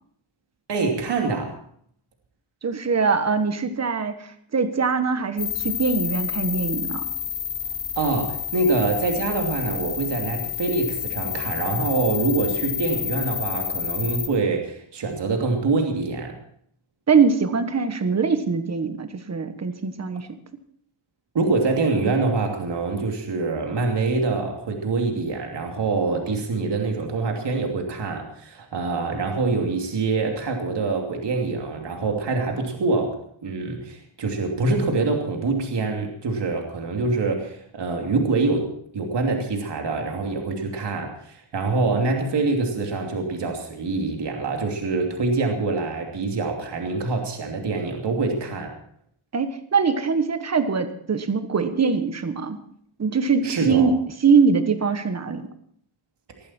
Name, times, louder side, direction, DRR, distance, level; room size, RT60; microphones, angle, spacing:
voice 1, 0.7-1.6 8.0-16.3 21.3-33.1 33.4-48.7 53.4-53.9, right 3 dB, 55° right, 2 dB, 2.9 m, -25 dB
voice 2, 2.6-7.0 17.1-20.3 49.3-52.6 53.0-53.9 54.2-55.5, right 5 dB, 30° right, 9 dB, 1.4 m, -22 dB
sound 1, 5.4-14.3, left 9 dB, 25° left, 4.0 m, -29 dB
20.0 x 14.0 x 4.4 m, 0.64 s
wide cardioid pair, 160°, 48 cm